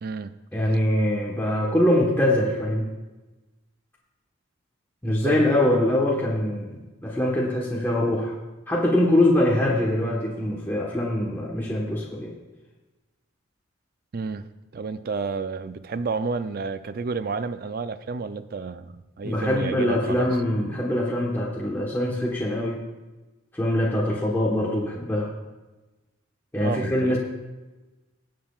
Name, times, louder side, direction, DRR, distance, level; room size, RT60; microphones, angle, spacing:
voice 1, 0.0-0.3 5.0-5.5 14.1-20.4 26.6-27.2, right 4 dB, 45° right, 12 dB, 0.4 m, -31 dB
voice 2, 0.5-2.9 5.0-8.4 8.7-12.3 19.2-22.8 23.5-25.3 26.5-27.2, left 1 dB, 10° left, -5 dB, 1.2 m, -23 dB
19.5 x 7.6 x 2.4 m, 1.1 s
head